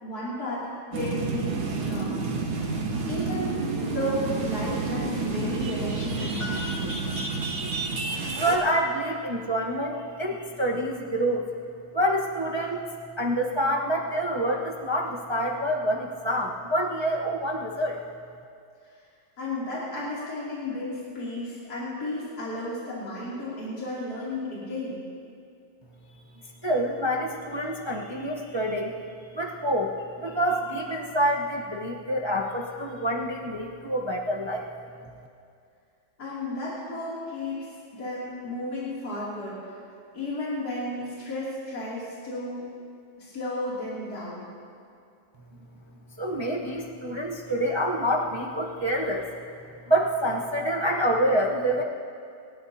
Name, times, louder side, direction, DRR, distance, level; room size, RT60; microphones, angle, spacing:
voice 1, 0.0-2.8 3.1-3.5 3.9-7.1 19.4-25.0 36.2-37.7 38.0-39.6 40.1-42.6 43.2-44.5, left 1 dB, 50° left, -8 dB, 3.3 m, -33 dB
sound 1, 0.9-8.6, right 4 dB, 80° right, 2.3 m, -29 dB
Piano, 6.4-8.2 8.5-8.6, left 2 dB, 65° left, 1.8 m, -42 dB
voice 2, 8.4-11.5 11.9-12.8 13.2-18.0 26.6-28.9 29.3-29.9 30.2-34.7 46.2-49.3 49.9-51.8, equal, 40° right, -2 dB, 0.4 m, -27 dB
28.0 x 12.5 x 2.8 m, 2.4 s
omnidirectional pair, 2.2 m